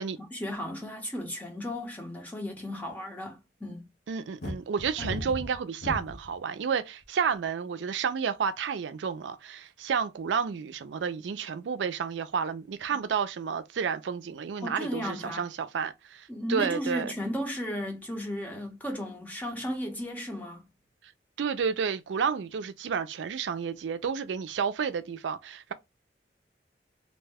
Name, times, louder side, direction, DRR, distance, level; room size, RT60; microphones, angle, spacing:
voice 1, 0.3-3.9 5.0-5.1 14.6-15.4 16.3-20.7, equal, 10° left, 0.8 m, -35 dB
voice 2, 4.1-17.1 21.4-25.7, right 6 dB, 85° right, 0.4 m, -31 dB
sound 1, 4.4-6.4 7.0-7.5, left 1 dB, 60° left, 0.6 m, -36 dB
2.6 x 2.1 x 3.3 m
head